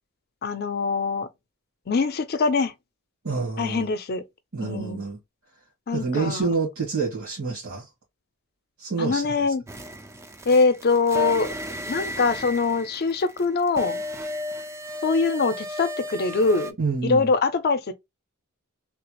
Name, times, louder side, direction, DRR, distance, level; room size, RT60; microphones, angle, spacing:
voice 1, 0.4-1.3 1.9-2.7 3.6-4.2 4.6-5.0 5.9-6.5 9.0-9.6 10.5-11.5 11.9-14.0 15.0-16.8 17.0-17.9, left 4 dB, 45° left, 0.5 m, -23 dB
voice 2, 3.2-3.9 4.5-5.2 5.9-7.9 8.8-9.5 16.8-17.3, right 4 dB, 75° right, 1.6 m, -28 dB
sound 1, 9.7-16.7, left 1 dB, 15° right, 0.3 m, -34 dB
3.3 x 2.4 x 2.9 m
head